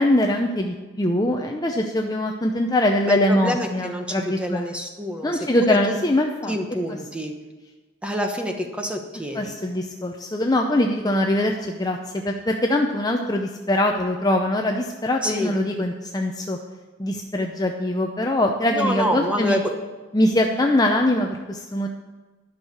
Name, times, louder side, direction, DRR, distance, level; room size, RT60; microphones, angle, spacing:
voice 1, 0.0-4.7 5.2-6.6 6.9-7.0 9.3-12.0 12.2-16.6 17.0-19.6 20.1-21.9, left 1 dB, 20° left, 2 dB, 0.6 m, -22 dB
voice 2, 3.0-4.1 4.4-5.3 5.6-6.0 6.5-7.3 8.0-9.5 15.2-15.6 18.7-19.6, equal, 5° right, 3 dB, 1.1 m, -27 dB
11.0 x 6.4 x 8.6 m, 1.3 s
head